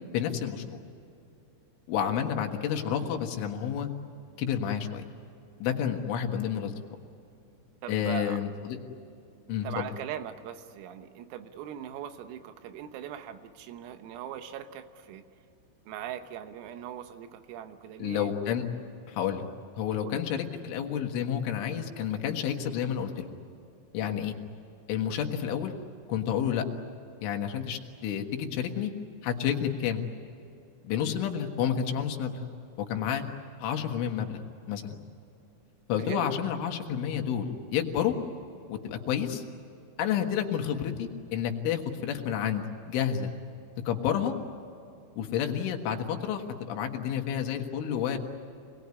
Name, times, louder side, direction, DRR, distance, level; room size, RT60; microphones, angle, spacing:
voice 1, 0.1-0.8 1.9-3.9 4.4-5.0 5.6-6.8 7.9-8.8 9.5-9.9 18.0-18.6 19.1-19.5 19.8-23.3 23.9-24.4 24.9-25.7 26.1-26.6 27.2-28.9 29.2-30.0 30.8-32.4 32.9-33.2 33.6-34.4 34.7-35.0 35.9-38.2 38.7-39.4 40.0-43.3 43.9-44.3 45.2-48.2, left 9 dB, 75° left, 3 dB, 4.0 m, -30 dB
voice 2, 7.8-8.4 9.6-15.2 15.9-18.3 20.0-20.2 36.0-36.3, right 10 dB, 90° right, 9 dB, 3.9 m, -40 dB
28.0 x 20.5 x 9.7 m, 2.7 s
omnidirectional pair, 5.9 m